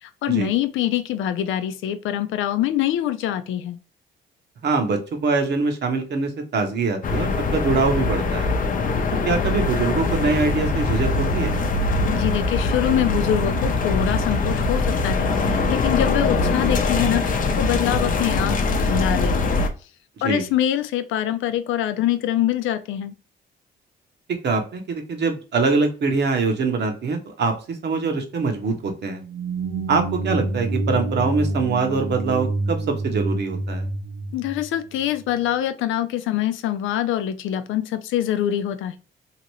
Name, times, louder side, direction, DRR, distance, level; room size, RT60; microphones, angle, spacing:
voice 1, 0.0-3.8 12.0-19.6 20.2-23.1 34.3-39.0, left 11 dB, 80° left, 0.5 m, -24 dB
voice 2, 4.6-8.5 9.3-11.6 20.2-20.5 24.4-29.2 29.9-33.9, right 4 dB, 60° right, 1.1 m, -23 dB
sound 1, 7.0-19.7, left 3 dB, 45° left, 0.7 m, -22 dB
sound 2, 29.2-35.3, right 2 dB, 85° right, 1.1 m, -27 dB
2.9 x 2.5 x 3.0 m
cardioid pair, 90°, 20 cm